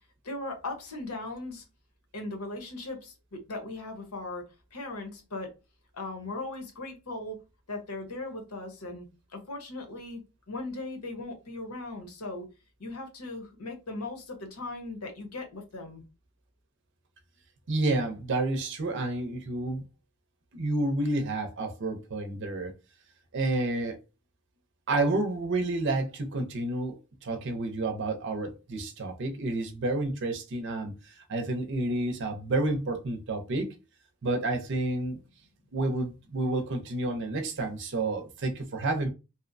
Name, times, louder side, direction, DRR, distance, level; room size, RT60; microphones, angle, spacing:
voice 1, 0.2-1.6 2.1-4.4 4.7-5.5 5.9-7.4 7.7-10.2 10.5-12.5 12.8-16.0, left 2 dB, 85° left, 0.9 m, -38 dB
voice 2, 17.7-19.9 20.5-22.7 23.3-24.0 24.9-30.9 31.3-33.7 34.2-35.2 35.7-39.1, right 2 dB, 55° right, 0.5 m, -30 dB
2.7 x 2.0 x 2.5 m
head